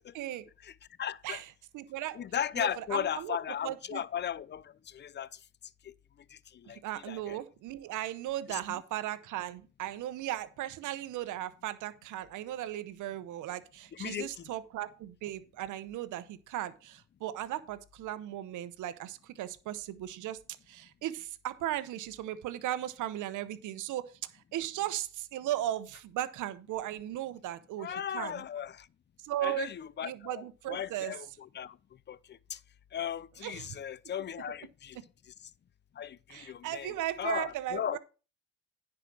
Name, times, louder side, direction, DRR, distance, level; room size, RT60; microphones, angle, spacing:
voice 1, 0.1-0.5 1.2-2.2 2.5-3.4 3.6-4.0 6.8-20.4 20.7-24.0 24.5-28.4 29.2-29.7 30.0-31.1 33.4-33.8 36.3-38.0, right 13 dB, 85° right, 0.9 m, -37 dB
voice 2, 1.0-1.4 2.1-5.3 6.3-6.8 7.1-7.4 8.5-8.8 13.9-14.5 27.8-28.9 29.4-31.3 31.5-31.8 32.1-32.2 32.5-32.6 32.9-35.0 36.0-36.9 37.2-38.0, left 9 dB, 35° left, 0.5 m, -36 dB
10.0 x 4.9 x 6.0 m
cardioid pair, 90°, 30 cm